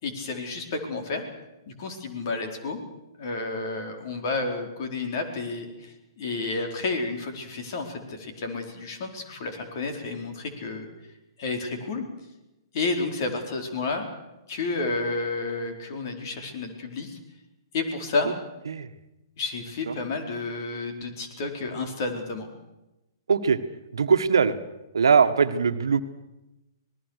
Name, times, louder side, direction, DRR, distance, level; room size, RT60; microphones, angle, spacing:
voice 1, 0.0-1.2 1.7-2.8 3.2-10.9 11.4-12.0 12.7-14.1 14.5-17.2 17.7-18.3 19.4-22.5, left 3 dB, 50° left, 5 dB, 4.5 m, -31 dB
voice 2, 23.3-23.6 23.9-24.6 24.9-26.0, right 6 dB, 75° right, 10 dB, 1.4 m, -21 dB
26.5 x 19.5 x 6.6 m, 0.96 s
hypercardioid pair, 125°, 2 cm